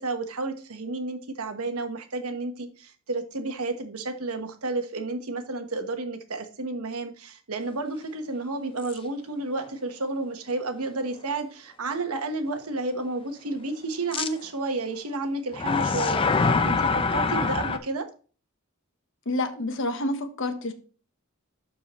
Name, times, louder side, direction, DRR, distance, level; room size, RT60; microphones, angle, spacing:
voice 1, 0.0-18.1, right 2 dB, 85° right, 1.2 m, -31 dB
sound 1, 8.8-9.0 9.6-9.7 14.1-14.3 15.5-17.8, left 4 dB, 25° left, 0.5 m, -24 dB
voice 2, 19.3-20.7, left 2 dB, 60° left, 1.1 m, -28 dB
12.0 x 4.6 x 3.0 m
head